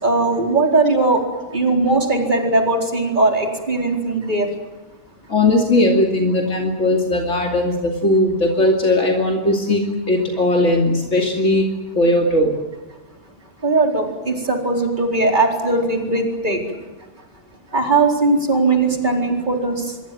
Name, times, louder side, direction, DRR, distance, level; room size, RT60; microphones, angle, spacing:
voice 1, 0.0-1.2 1.5-4.5 13.6-16.6 17.7-19.8, right 3 dB, 40° right, 2 dB, 4.5 m, -19 dB
voice 2, 5.3-12.6, left 1 dB, 80° left, 2 dB, 3.0 m, -18 dB
27.0 x 21.5 x 7.7 m, 1.1 s
omnidirectional pair, 1.2 m